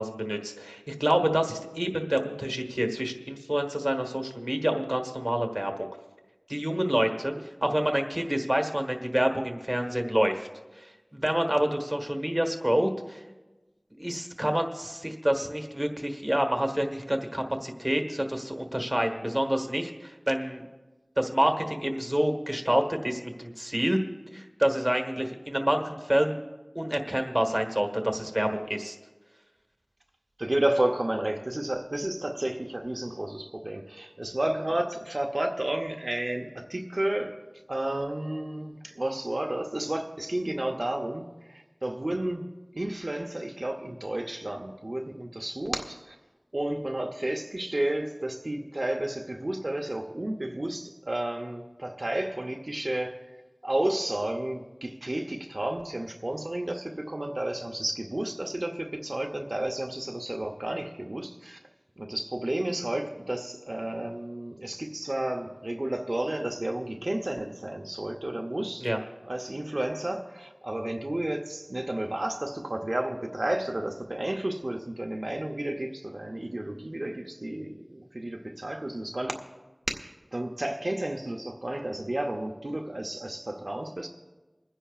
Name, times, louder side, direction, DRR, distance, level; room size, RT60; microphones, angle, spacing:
voice 1, 0.0-5.9 6.5-7.4 7.6-10.5 10.7-13.2 14.0-20.6 21.2-24.0 24.3-26.4 26.7-28.9 68.8-69.0, equal, 20° right, 4 dB, 1.4 m, -27 dB
voice 2, 30.4-37.4 37.7-42.5 42.7-46.1 46.5-53.1 53.6-61.6 62.0-68.9 69.2-79.3 80.3-84.1, right 1 dB, 65° right, 2 dB, 0.7 m, -31 dB
29.0 x 10.0 x 2.4 m, 1.2 s
wide cardioid pair, 40°, 0 cm